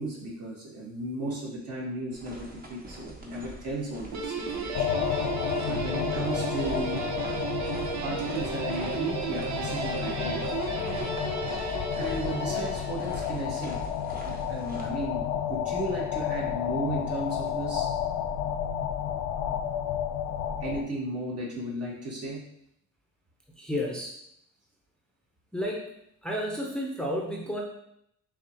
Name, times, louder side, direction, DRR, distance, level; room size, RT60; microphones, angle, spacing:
voice 1, 0.0-4.9 5.7-7.1 8.0-10.4 11.9-13.8 14.2-17.9 20.6-22.4, right 1 dB, 55° right, -4 dB, 1.6 m, -35 dB
sound 1, 2.1-14.9, right 1 dB, 30° right, 1.0 m, -44 dB
Guitar, 4.1-13.4, right 5 dB, 70° right, 0.7 m, -34 dB
sound 2, 4.7-20.8, left 9 dB, 90° left, 0.5 m, -31 dB
voice 2, 23.5-24.1 25.5-25.9 26.2-27.6, equal, 5° left, -2 dB, 0.7 m, -31 dB
6.6 x 2.4 x 2.9 m, 0.74 s
cardioid pair, 90°, 30 cm